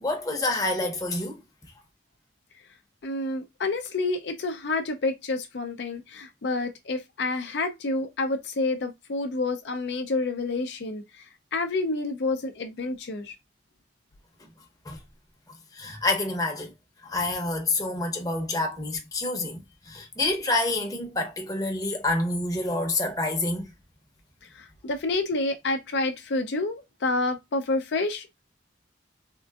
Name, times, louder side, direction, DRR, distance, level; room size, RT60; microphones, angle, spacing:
voice 1, 0.0-1.4 14.9-15.0 15.8-16.7 17.0-19.6 19.9-23.7, left 2 dB, 20° left, 0.7 m, -27 dB
voice 2, 3.0-11.0 11.5-13.3 24.8-28.3, left 3 dB, 70° left, 0.5 m, -28 dB
3.6 x 2.5 x 2.3 m
head